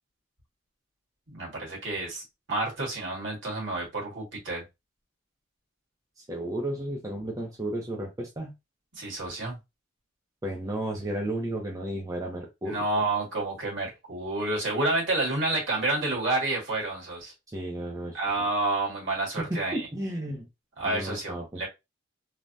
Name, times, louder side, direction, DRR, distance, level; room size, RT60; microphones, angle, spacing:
voice 1, 1.3-2.2 2.5-4.6 8.9-9.6 12.6-17.3 18.1-19.9 20.8-21.7, right 2 dB, 65° right, 1.6 m, -29 dB
voice 2, 6.3-8.5 10.4-12.8 17.5-18.2 19.4-20.5 20.8-21.6, right 1 dB, 15° right, 0.5 m, -33 dB
3.2 x 2.1 x 2.5 m
head